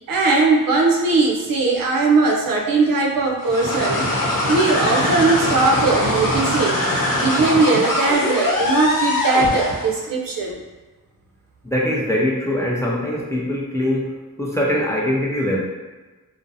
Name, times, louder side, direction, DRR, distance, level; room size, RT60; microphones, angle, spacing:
voice 1, 0.1-4.1 4.5-6.8 7.1-10.6, right 3 dB, 70° right, 0 dB, 0.5 m, -19 dB
sound 1, 3.4-9.9, left 1 dB, 65° left, 0.9 m, -22 dB
voice 2, 11.6-15.6, left 1 dB, 10° left, -4 dB, 0.4 m, -22 dB
2.5 x 2.0 x 2.6 m, 1.2 s
wide cardioid pair, 90°, 35 cm